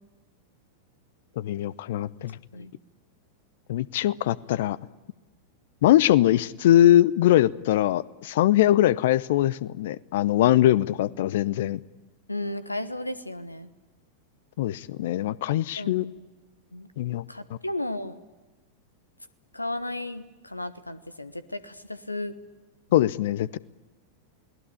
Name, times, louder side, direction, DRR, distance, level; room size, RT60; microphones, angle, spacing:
voice 1, 1.4-2.4 3.7-4.8 5.8-11.8 14.6-16.0 17.0-17.2 22.9-23.6, left 13 dB, 55° left, 21 dB, 0.7 m, -22 dB
voice 2, 12.3-13.7 15.8-16.2 16.7-16.9 17.3-18.2 19.5-22.4, left 1 dB, 85° left, 14 dB, 1.3 m, -34 dB
28.5 x 19.5 x 8.6 m, 1.2 s
figure-of-eight pair, 90°, 0 cm